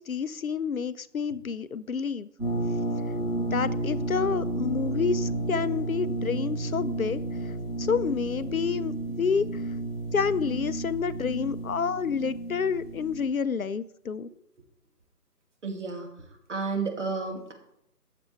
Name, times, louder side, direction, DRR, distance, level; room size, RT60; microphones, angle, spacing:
voice 1, 0.0-2.3 3.4-7.5 7.8-9.6 10.1-14.3, left 6 dB, 65° left, 15 dB, 0.6 m, -29 dB
sound 1, 2.4-13.3, right 2 dB, 10° right, 5.2 m, -32 dB
voice 2, 15.6-16.1 16.5-17.5, right 4 dB, 50° right, 2 dB, 2.4 m, -31 dB
14.0 x 6.9 x 4.4 m, 0.77 s
figure-of-eight pair, 160°, 47 cm